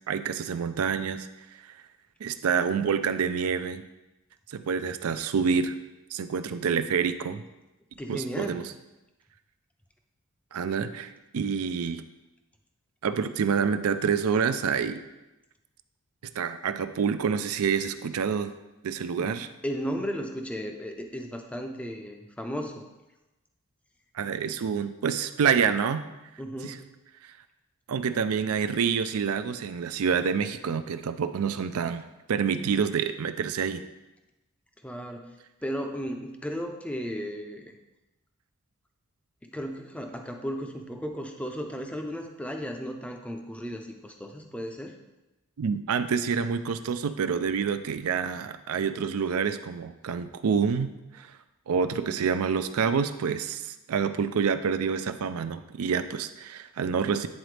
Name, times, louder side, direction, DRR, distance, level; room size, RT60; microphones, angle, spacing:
voice 1, 0.1-1.3 1.6-1.7 2.2-3.8 4.5-5.8 6.1-7.4 8.1-8.7 10.5-12.1 13.0-15.0 16.3-18.5 18.8-19.5 24.1-26.0 26.6-26.8 27.2-27.3 27.9-33.8 45.6-51.4 51.7-57.3, right 6 dB, 85° right, 11 dB, 0.4 m, -27 dB
voice 2, 8.0-8.6 19.2-19.3 19.6-22.8 24.5-24.6 26.4-26.8 34.8-35.4 35.6-37.7 39.4-44.9, equal, 5° left, 4 dB, 0.4 m, -35 dB
9.3 x 3.9 x 3.3 m, 1.0 s
head